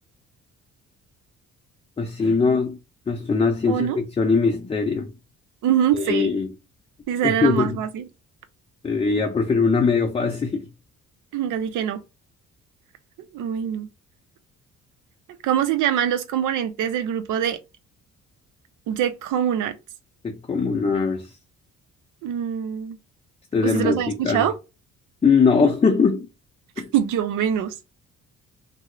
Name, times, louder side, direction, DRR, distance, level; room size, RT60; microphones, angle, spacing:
voice 1, 2.0-2.8 3.1-5.1 5.9-6.5 7.2-7.8 8.8-10.7 20.2-21.3 23.5-24.5 25.2-26.3 26.8-26.9, left 4 dB, 20° left, 0.4 m, -21 dB
voice 2, 3.7-4.0 5.6-6.3 7.1-8.0 11.3-12.0 13.3-13.9 15.4-17.6 18.9-19.7 22.2-23.0 23.6-24.5 26.9-27.7, right 9 dB, 85° right, 0.6 m, -24 dB
2.9 x 2.0 x 3.7 m
cardioid pair, 90°, 30 cm